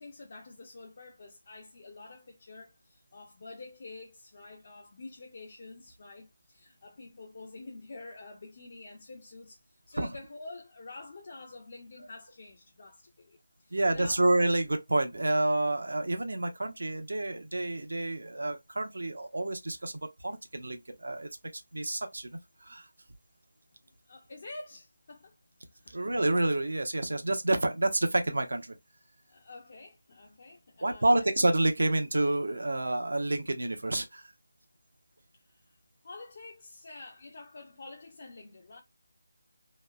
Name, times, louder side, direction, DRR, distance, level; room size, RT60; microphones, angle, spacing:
voice 1, 0.0-14.2 24.0-25.4 25.7-26.0 29.3-31.2 35.5-35.8 36.0-38.8, left 3 dB, 40° left, 0.5 m, -48 dB
voice 2, 13.7-21.3 21.7-22.9 25.9-28.7 30.8-34.3, right 2 dB, 75° right, 0.7 m, -29 dB
3.0 x 2.0 x 2.3 m
figure-of-eight pair, 170°, 0 cm